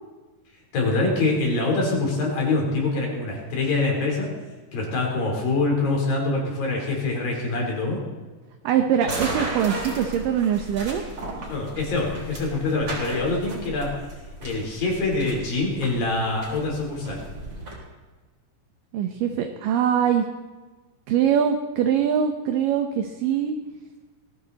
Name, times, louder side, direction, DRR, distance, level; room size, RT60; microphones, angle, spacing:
voice 1, 0.7-4.3 4.7-8.0 11.5-13.9 14.4-17.3, left 3 dB, 65° left, -1 dB, 5.7 m, -25 dB
voice 2, 8.6-11.0 18.9-20.2 21.1-23.6, right 8 dB, 70° right, 5 dB, 2.4 m, -23 dB
sound 1, 9.0-17.7, right 1 dB, 35° right, 4.4 m, -35 dB
21.0 x 16.0 x 4.2 m, 1.3 s
omnidirectional pair, 4.4 m